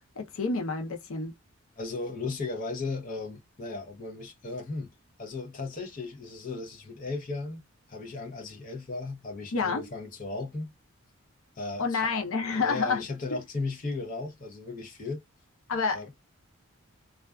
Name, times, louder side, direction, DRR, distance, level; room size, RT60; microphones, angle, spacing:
voice 1, 0.2-1.3 9.5-9.9 11.8-13.0 13.3-13.4 15.7-16.1, left 4 dB, 75° left, 0.7 m, -29 dB
voice 2, 1.8-4.9 5.2-10.7 11.6-12.0 12.5-15.2 15.9-16.0, left 3 dB, 40° left, 0.7 m, -36 dB
2.4 x 2.3 x 2.2 m
head